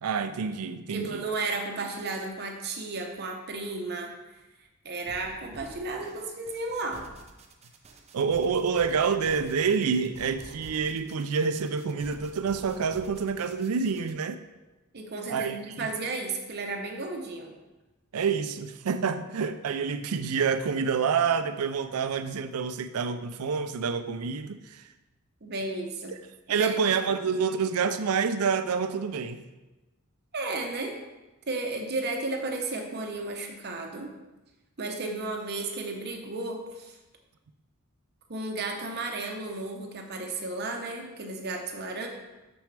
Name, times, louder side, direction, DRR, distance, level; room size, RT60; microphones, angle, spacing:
voice 1, 0.0-1.2 8.1-14.4 15.3-15.9 18.1-24.8 26.5-29.4, right 6 dB, 85° right, 10 dB, 0.4 m, -28 dB
voice 2, 0.9-4.1 4.8-7.1 14.9-17.5 25.4-26.1 26.5-27.0 30.3-30.9 31.5-34.1 34.8-37.0 38.3-42.1, right 3 dB, 50° right, 2 dB, 0.9 m, -33 dB
sound 1, 5.0-14.1, right 2 dB, 30° right, 0.6 m, -50 dB
6.3 x 6.2 x 3.3 m, 1.1 s
head